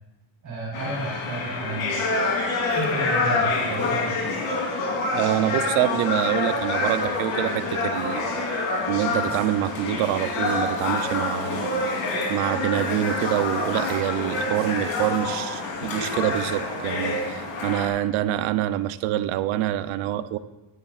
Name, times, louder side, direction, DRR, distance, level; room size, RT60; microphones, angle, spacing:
voice 1, 0.4-2.0 2.7-4.3, right 2 dB, 40° right, -4 dB, 3.9 m, -32 dB
sound 1, 0.7-17.9, left 3 dB, 85° left, 3.4 m, -27 dB
voice 2, 5.1-8.2 8.9-12.0 12.3-20.4, right 13 dB, 80° right, 13 dB, 0.7 m, -26 dB
17.5 x 10.5 x 2.4 m, 1.1 s
cardioid pair, 120°, 47 cm